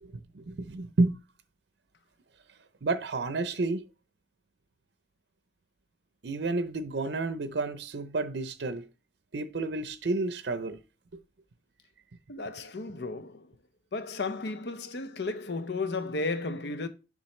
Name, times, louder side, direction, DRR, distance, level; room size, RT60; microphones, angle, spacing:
voice 1, 0.0-1.1 2.8-3.8 6.2-8.9 9.3-10.8 11.1-11.2, right 3 dB, 80° right, 0.6 m, -30 dB
voice 2, 12.3-13.5 13.9-16.9, left 3 dB, 75° left, 0.7 m, -34 dB
7.2 x 5.5 x 3.2 m
head